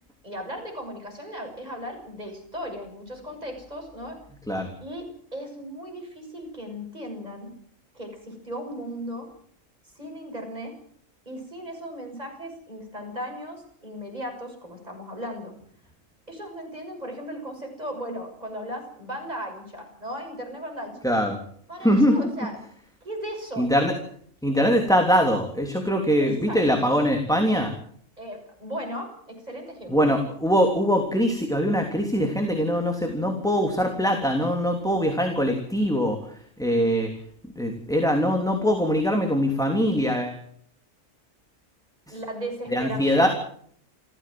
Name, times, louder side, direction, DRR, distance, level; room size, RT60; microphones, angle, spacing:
voice 1, 0.2-4.2 4.8-7.5 7.9-9.3 10.0-10.7 11.3-15.5 16.3-20.9 21.7-22.6 23.0-23.8 26.2-26.6 28.2-30.1 42.1-43.3, equal, 30° right, 2 dB, 6.9 m, -36 dB
voice 2, 21.0-21.4 21.8-22.3 23.6-23.9 24.4-27.7 29.9-37.1 37.5-40.4 42.1-42.2 42.7-43.3, equal, 5° left, 3 dB, 3.2 m, -22 dB
29.0 x 15.0 x 7.8 m, 0.62 s
omnidirectional pair, 1.4 m